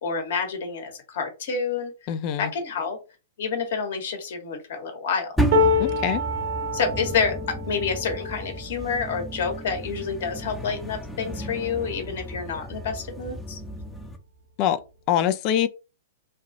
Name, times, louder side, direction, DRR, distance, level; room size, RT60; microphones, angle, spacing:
voice 1, 0.0-1.9 2.4-3.0 3.4-5.3 6.7-13.6, left 5 dB, 55° left, 1.2 m, -28 dB
voice 2, 2.1-2.5 5.8-6.2 14.6-14.8 15.1-15.7, left 10 dB, 40° left, 0.5 m, -23 dB
sound 1, 5.4-14.2, right 1 dB, 5° left, 0.8 m, -33 dB
sound 2, 5.5-11.7 12.2-12.4 12.7-13.5 14.5-14.6, left 2 dB, 50° right, 1.0 m, -28 dB
3.2 x 2.4 x 3.9 m
figure-of-eight pair, 110°, 0 cm